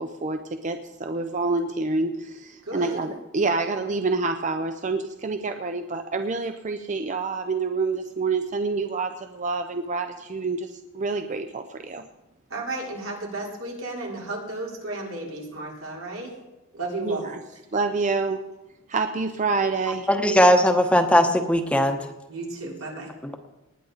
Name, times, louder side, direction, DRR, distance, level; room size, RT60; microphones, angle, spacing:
voice 1, 0.0-12.0 17.0-17.4 17.7-18.4 18.9-20.1, right 3 dB, 35° right, 7 dB, 0.6 m, -27 dB
voice 2, 2.7-3.0 12.5-16.3 16.7-17.2 22.3-23.1, right 2 dB, 85° right, -2 dB, 3.9 m, -33 dB
voice 3, 20.1-22.0 23.2-23.3, equal, 5° left, 5 dB, 0.9 m, -19 dB
19.5 x 10.0 x 4.0 m, 0.99 s
head